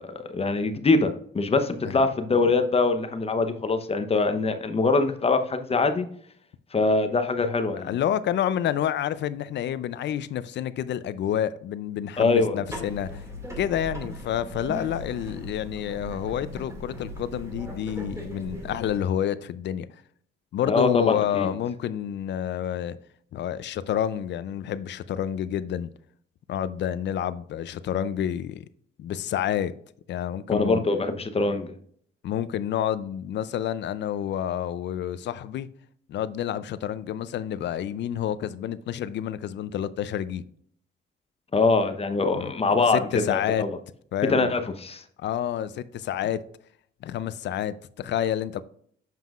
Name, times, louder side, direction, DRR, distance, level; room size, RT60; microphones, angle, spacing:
voice 1, 0.0-6.1 6.7-7.9 12.2-12.6 20.6-21.5 30.5-31.7 41.5-43.8 44.3-45.0, left 3 dB, 30° left, 0.8 m, -23 dB
voice 2, 7.8-13.2 13.6-19.9 20.5-23.0 23.3-25.9 26.5-28.6 29.0-29.7 30.1-30.8 32.2-35.7 36.1-40.4 42.3-42.5 42.9-43.6 44.1-44.5 45.2-46.4 47.0-48.6, left 10 dB, 65° left, 0.5 m, -29 dB
sound 1, 12.6-19.0, equal, 15° right, 2.1 m, -38 dB
7.3 x 5.6 x 2.4 m
cardioid pair, 90°, 20 cm